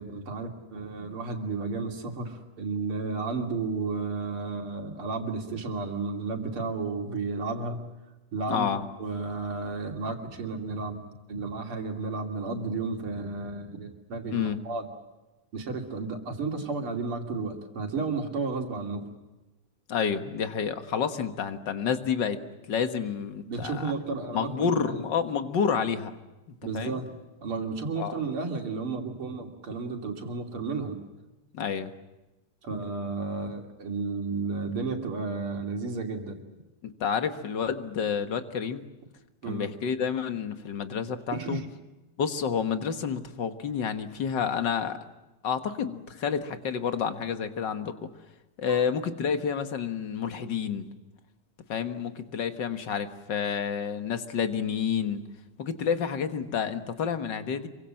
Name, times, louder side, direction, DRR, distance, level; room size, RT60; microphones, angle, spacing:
voice 1, 0.0-7.8 8.3-8.7 9.0-11.0 11.3-14.9 15.5-19.0 23.5-24.9 26.6-27.1 27.4-31.0 32.6-36.4 39.4-39.7 41.3-41.7 48.7-48.9, right 4 dB, 90° right, 3 dB, 3.7 m, -32 dB
voice 2, 8.5-8.9 14.3-14.6 19.9-22.4 22.7-23.9 24.3-26.1 26.7-27.0 28.0-28.2 31.5-31.9 36.8-38.8 39.5-41.6 42.2-45.0 45.4-48.1 48.6-50.9 51.7-55.2 55.6-57.7, left 7 dB, 60° left, 8 dB, 2.1 m, -29 dB
26.5 x 24.0 x 7.7 m, 1.1 s
omnidirectional pair, 2.3 m